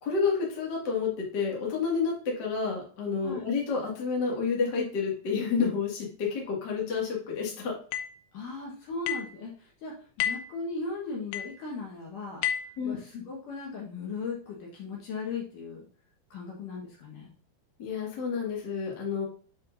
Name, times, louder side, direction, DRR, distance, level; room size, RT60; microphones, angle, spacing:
voice 1, 0.0-7.8 12.8-13.0 17.8-19.2, left 5 dB, 40° left, -2 dB, 1.5 m, -29 dB
sound 1, 7.9-8.2 9.1-9.4 10.2-10.6 11.3-11.6 12.4-12.8, left 10 dB, 80° left, 2.8 m, -31 dB
voice 2, 8.3-12.4 12.8-15.9 16.3-17.3, left 4 dB, 65° left, -3 dB, 2.4 m, -37 dB
7.3 x 5.4 x 2.5 m, 0.43 s
omnidirectional pair, 4.8 m